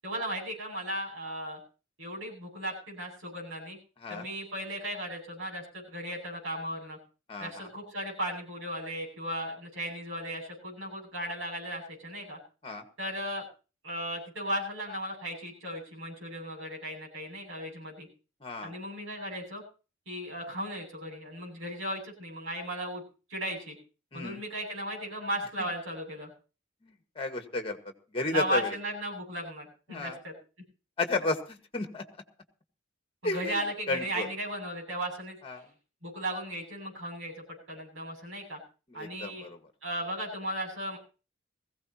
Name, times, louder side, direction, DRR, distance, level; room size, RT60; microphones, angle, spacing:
voice 1, 0.0-1.6 2.0-3.8 4.1-7.0 7.4-12.4 13.0-13.4 13.8-18.1 18.6-19.6 20.1-23.0 23.3-23.8 24.1-26.3 28.3-30.3 33.2-35.4 36.0-38.6 38.9-39.5 39.8-41.0, equal, 85° right, -1 dB, 7.6 m, -36 dB
voice 2, 7.3-7.7 12.6-12.8 18.4-18.7 24.1-24.4 26.8-27.8 28.1-28.7 29.9-30.2 31.0-32.0 33.2-34.3 35.4-35.7 38.9-39.6, left 2 dB, 30° left, 7 dB, 1.7 m, -33 dB
20.0 x 16.0 x 3.0 m, 0.34 s
head